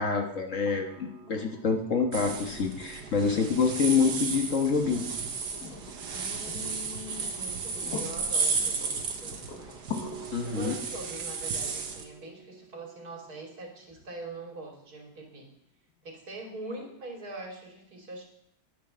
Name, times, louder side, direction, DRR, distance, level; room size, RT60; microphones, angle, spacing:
voice 1, 0.0-5.0 10.3-10.8, left 5 dB, 50° left, 4 dB, 1.6 m, -27 dB
sound 1, 0.7-14.6 16.3-16.4, left 3 dB, 75° left, 2.1 m, -45 dB
sound 2, 2.1-12.0, right 5 dB, 85° right, 1.9 m, -34 dB
voice 2, 6.1-9.8 10.4-15.5 16.0-18.3, right 1 dB, 65° right, 1 dB, 3.0 m, -43 dB
11.0 x 10.0 x 6.2 m, 0.78 s
omnidirectional pair, 1.7 m